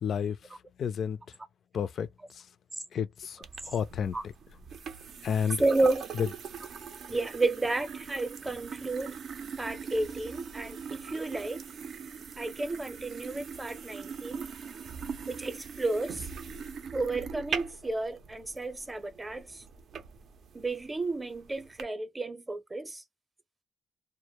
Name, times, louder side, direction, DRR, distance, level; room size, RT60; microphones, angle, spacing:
voice 1, 0.0-1.4 1.7-2.6 2.9-4.3 5.2-5.6 6.1-6.3 15.0-15.1, left 7 dB, 60° left, 0.3 m, -32 dB
sound 1, 3.4-21.8, right 6 dB, 60° right, 0.4 m, -42 dB
voice 2, 5.6-6.0 7.1-9.2 9.6-11.6 12.4-14.5 15.3-16.3 16.9-19.6 20.5-23.0, right 2 dB, 20° right, 0.6 m, -32 dB
2.1 x 2.1 x 2.9 m
cardioid pair, 90°, 0 cm